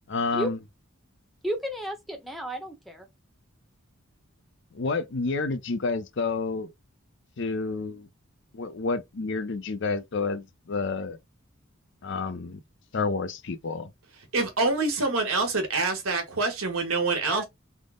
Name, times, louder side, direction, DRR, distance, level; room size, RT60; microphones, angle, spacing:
voice 1, 0.1-0.6 4.7-6.7 7.4-8.1 8.5-11.2 12.0-12.6 12.9-13.9, left 4 dB, 60° left, 0.5 m, -29 dB
voice 2, 1.4-3.1 17.2-17.4, equal, ahead, 0.7 m, -33 dB
voice 3, 14.3-17.4, right 3 dB, 80° right, 1.3 m, -26 dB
3.6 x 2.1 x 3.6 m
head